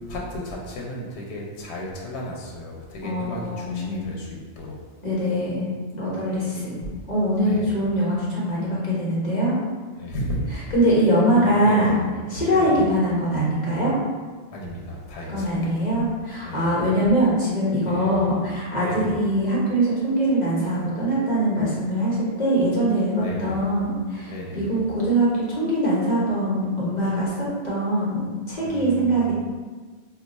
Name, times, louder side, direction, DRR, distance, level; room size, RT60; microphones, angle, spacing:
voice 1, 0.1-4.8 7.4-7.8 10.0-10.4 11.3-12.1 12.4-12.9 14.5-15.9 16.4-16.7 17.8-18.4 18.8-19.2 23.2-23.7 24.3-24.8 28.6-29.3, equal, 85° left, -2 dB, 0.9 m, -34 dB
voice 2, 3.0-4.0 5.0-5.7 5.9-6.7 7.1-9.5 10.5-12.0 12.3-13.9 15.3-29.3, right 1 dB, 45° left, -7 dB, 1.0 m, -22 dB
2.5 x 2.3 x 4.0 m, 1.4 s
omnidirectional pair, 1.1 m